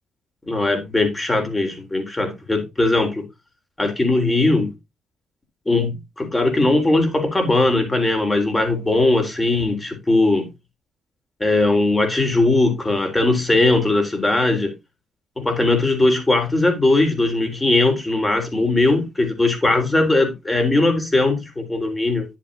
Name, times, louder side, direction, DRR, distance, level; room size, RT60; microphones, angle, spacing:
voice 1, 0.4-3.2 3.8-4.7 5.7-10.5 11.4-14.7 15.4-22.3, left 2 dB, 15° left, 3.7 m, -19 dB
10.5 x 7.6 x 2.7 m
cardioid pair, 90°, 0 cm